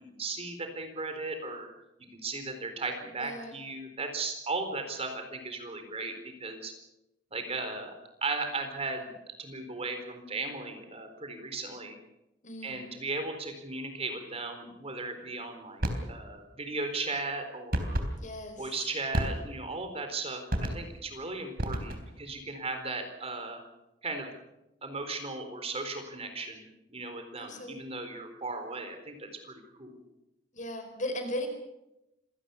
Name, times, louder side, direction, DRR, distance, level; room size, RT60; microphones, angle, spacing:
voice 1, 0.1-1.7 2.2-6.1 6.4-6.7 7.3-7.9 8.2-9.1 9.4-12.0 12.6-18.0 18.6-23.6 24.0-24.3 24.8-30.0, right 3 dB, 35° right, 6 dB, 4.1 m, -36 dB
voice 2, 3.2-3.6 12.4-12.8 18.2-18.7 27.4-27.7 30.5-31.5, left 1 dB, 45° left, 6 dB, 4.8 m, -37 dB
sound 1, 15.8-16.1 17.7-18.1 19.1-19.6 20.5-21.0 21.6-22.2, equal, 55° right, 3.6 m, -31 dB
26.0 x 18.0 x 7.1 m, 0.91 s
head